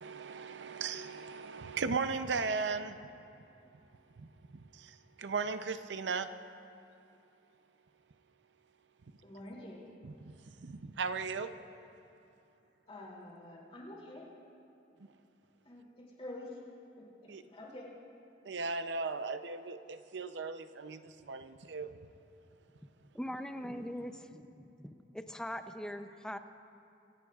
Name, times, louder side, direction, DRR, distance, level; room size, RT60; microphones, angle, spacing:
voice 1, 0.0-3.0 4.2-6.3 10.2-11.5 17.3-17.4 18.5-21.9, right 4 dB, 75° right, 11 dB, 0.6 m, -37 dB
voice 2, 9.2-9.8 12.9-14.3 15.4-16.6 17.0-17.9, left 1 dB, 35° left, -3 dB, 2.8 m, -48 dB
voice 3, 23.1-26.4, equal, 5° left, 8 dB, 0.5 m, -41 dB
25.0 x 16.5 x 2.4 m, 2.8 s
head